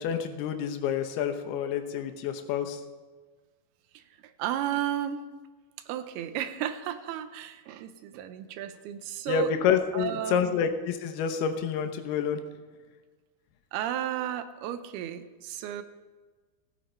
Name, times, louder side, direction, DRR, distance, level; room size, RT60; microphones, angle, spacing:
voice 1, 0.0-2.8 9.3-12.4, left 7 dB, 85° left, 7 dB, 2.9 m, -28 dB
voice 2, 3.9-5.3 5.9-9.5 9.9-10.6 13.7-15.8, right 11 dB, 85° right, 11 dB, 2.7 m, -33 dB
16.0 x 9.1 x 4.4 m, 1.4 s
omnidirectional pair, 4.4 m